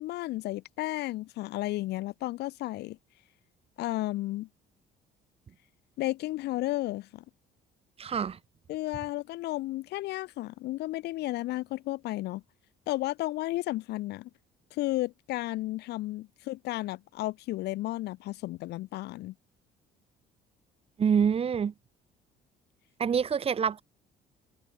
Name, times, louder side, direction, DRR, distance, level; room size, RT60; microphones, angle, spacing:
voice 1, 0.0-3.0 3.8-4.5 6.0-7.2 8.7-12.4 12.9-14.3 14.7-19.3, left 17 dB, 75° left, 1.1 m, -33 dB
voice 2, 8.0-8.4 21.0-21.7 23.0-23.8, right 7 dB, 35° right, 1.2 m, -26 dB
cardioid pair, 110°, 17 cm